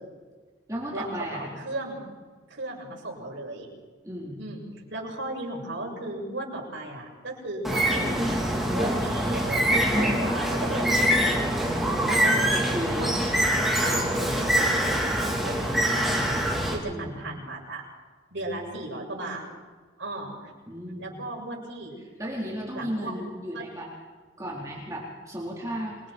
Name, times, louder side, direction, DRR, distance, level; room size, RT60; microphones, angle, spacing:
voice 1, 0.7-1.5 4.0-4.4 12.2-13.0 16.9-17.3 20.7-21.3 22.2-23.9 24.4-26.0, equal, 15° right, -4 dB, 4.3 m, -34 dB
voice 2, 1.3-2.0 2.5-3.7 4.4-11.1 11.6-12.4 13.0-13.2 13.8-17.8 18.3-19.4 20.0-20.3 21.0-22.0 22.7-23.1 23.5-23.7, right 2 dB, 90° right, -2 dB, 7.1 m, -36 dB
Bird, 7.6-16.7, equal, ahead, 3.8 m, -24 dB
28.0 x 23.0 x 4.6 m, 1.4 s
head